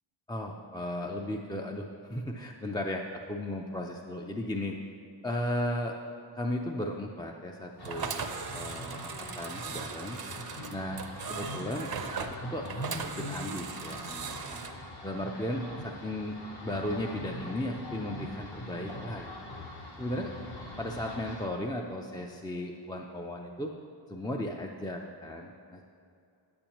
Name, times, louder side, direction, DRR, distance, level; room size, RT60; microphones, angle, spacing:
voice 1, 0.3-4.8 5.2-5.9 6.4-8.2 8.5-10.2 10.7-11.0 11.3-11.9 12.2-12.7 13.0-14.6 15.0-19.3 20.0-20.3 20.8-23.7 24.1-25.9, left 1 dB, 10° left, 1 dB, 0.4 m, -35 dB
sound 1, 7.8-21.5, left 1 dB, 50° left, 1.1 m, -43 dB
sound 2, 7.8-14.7, right 5 dB, 50° right, 0.6 m, -38 dB
sound 3, 15.2-19.2, equal, 80° left, 2.2 m, -59 dB
9.8 x 8.6 x 3.0 m, 2.5 s
wide cardioid pair, 90°, 49 cm